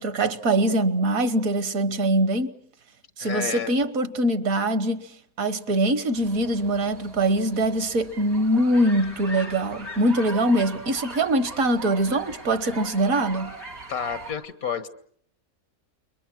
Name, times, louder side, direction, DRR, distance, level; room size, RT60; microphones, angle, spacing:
voice 1, 0.0-2.5 3.2-5.1 5.4-13.5, right 1 dB, 75° right, 1.7 m, -23 dB
voice 2, 3.2-3.7 13.9-14.9, left 7 dB, 90° left, 1.9 m, -30 dB
sound 1, 6.1-14.3, right 2 dB, 90° right, 7.3 m, -40 dB
29.0 x 23.0 x 6.3 m
omnidirectional pair, 1.5 m